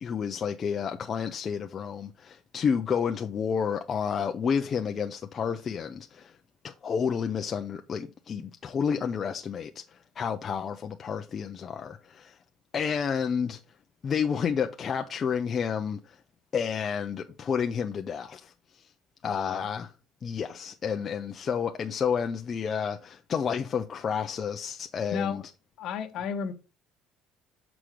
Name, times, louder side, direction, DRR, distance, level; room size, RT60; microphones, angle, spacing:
voice 1, 0.0-6.4 6.6-12.4 12.7-13.6 14.0-16.2 16.5-18.8 19.2-19.9 20.2-25.4, left 7 dB, 30° left, 0.5 m, -30 dB
voice 2, 19.2-19.7 25.1-25.4 25.8-26.5, left 6 dB, 55° left, 1.0 m, -33 dB
6.1 x 5.0 x 4.8 m
cardioid pair, 140°, 0 cm